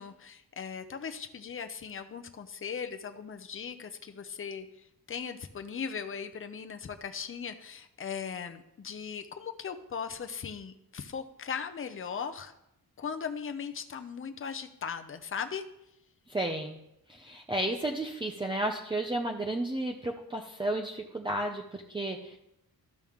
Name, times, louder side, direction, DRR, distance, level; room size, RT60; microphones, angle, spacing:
voice 1, 0.0-4.7 5.1-12.5 13.0-15.6, left 6 dB, 35° left, 7 dB, 0.7 m, -38 dB
voice 2, 16.3-16.8 17.1-22.4, right 1 dB, 15° right, 2 dB, 0.6 m, -32 dB
12.5 x 6.2 x 3.6 m, 0.82 s
wide cardioid pair, 140°, 37 cm